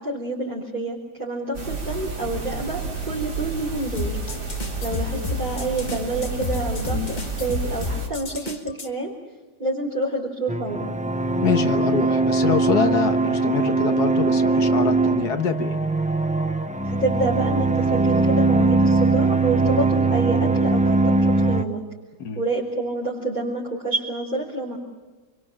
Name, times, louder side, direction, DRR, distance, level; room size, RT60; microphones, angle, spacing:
voice 1, 0.0-2.8 3.1-4.2 4.8-9.1 9.6-11.0 16.8-21.8 22.3-24.8, right 2 dB, 25° right, -5 dB, 4.2 m, -28 dB
sound 1, 1.5-8.1, right 4 dB, 85° right, 4.4 m, -31 dB
sound 2, 3.9-8.9, left 3 dB, 30° left, 1.4 m, -31 dB
sound 3, 10.5-21.6, right 3 dB, 10° right, 0.5 m, -21 dB
voice 2, 11.4-15.8 22.2-22.4, left 7 dB, 80° left, 8 dB, 1.9 m, -25 dB
28.0 x 23.0 x 7.4 m, 1.3 s
omnidirectional pair, 1.7 m